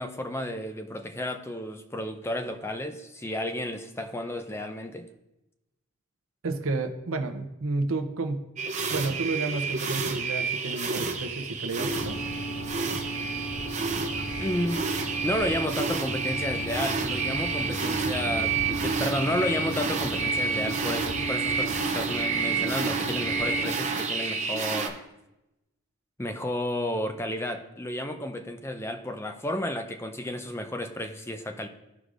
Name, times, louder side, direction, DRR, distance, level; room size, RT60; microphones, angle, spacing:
voice 1, 0.0-5.1 14.4-14.9 15.2-25.0 26.2-31.7, left 1 dB, 10° left, 7 dB, 0.5 m, -32 dB
voice 2, 6.4-8.5 8.9-12.2, right 3 dB, 70° right, 6 dB, 0.7 m, -31 dB
sound 1, 8.6-24.9, right 4 dB, 30° right, 0.7 m, -30 dB
sound 2, 11.8-23.7, right 1 dB, 45° left, 1.4 m, -34 dB
14.0 x 4.8 x 2.5 m, 0.93 s
head